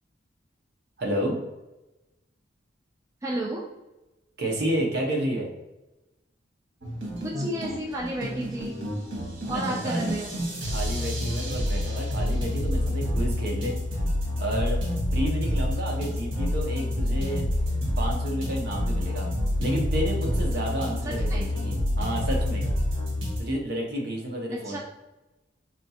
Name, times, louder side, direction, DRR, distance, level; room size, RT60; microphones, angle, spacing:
voice 1, 1.0-1.4 4.4-5.5 9.5-10.1 10.7-13.8 14.4-14.8 15.1-17.5 18.0-19.3 19.6-22.6 23.4-24.8, right 1 dB, 55° right, 0 dB, 0.8 m, -30 dB
voice 2, 3.2-3.6 7.2-8.7 9.5-10.3 21.0-21.4 24.6-24.8, right 1 dB, 15° right, -3 dB, 0.3 m, -32 dB
sound 1, 6.8-23.4, left 1 dB, 85° right, 1.1 m, -28 dB
4.3 x 2.3 x 2.7 m, 1.0 s
head